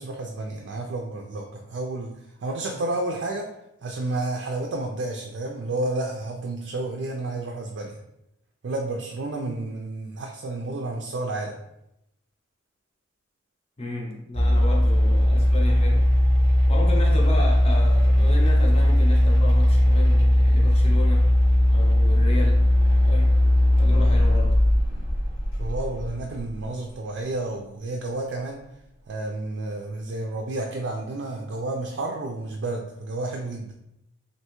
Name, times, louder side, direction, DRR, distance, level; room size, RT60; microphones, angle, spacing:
voice 1, 0.0-3.5 3.8-8.0 8.6-11.6 25.6-28.6 29.1-33.7, right 2 dB, 65° right, 1 dB, 0.4 m, -31 dB
voice 2, 13.8-16.1 16.7-21.4 21.7-22.7 23.1-23.4 23.8-24.6, left 2 dB, 30° left, -1 dB, 0.6 m, -33 dB
sound 1, 14.3-26.6, left 1 dB, 80° left, 1.3 m, -18 dB
3.2 x 2.6 x 2.9 m, 0.83 s
head